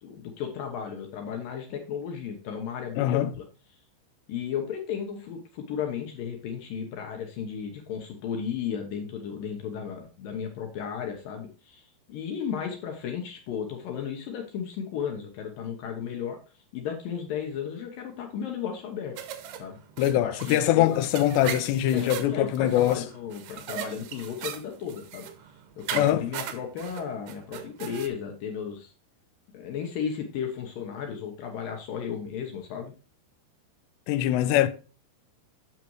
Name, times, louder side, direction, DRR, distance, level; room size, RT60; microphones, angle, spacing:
voice 1, 0.0-3.4 4.3-16.4 16.7-19.2 19.6-19.8 20.1-21.0 21.9-25.3 25.8-28.9 29.5-32.9, left 7 dB, 70° left, 2.5 m, -34 dB
voice 2, 3.0-3.3 20.0-23.0 25.9-26.2 34.1-34.7, left 12 dB, 90° left, 2.9 m, -23 dB
sound 1, 19.2-28.1, right 10 dB, 75° right, 2.0 m, -39 dB
8.5 x 6.6 x 3.1 m
omnidirectional pair, 4.8 m